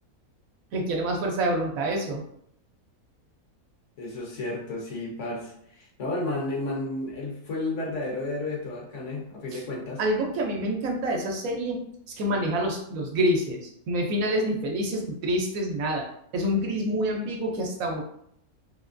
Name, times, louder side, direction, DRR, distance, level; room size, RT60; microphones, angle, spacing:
voice 1, 0.7-2.2 10.0-11.8 12.2-16.0 16.3-18.0, equal, 70° right, 0 dB, 1.1 m, -27 dB
voice 2, 4.0-10.0, left 2 dB, 60° left, -3 dB, 1.1 m, -32 dB
3.5 x 2.9 x 2.5 m, 0.71 s
omnidirectional pair, 1.6 m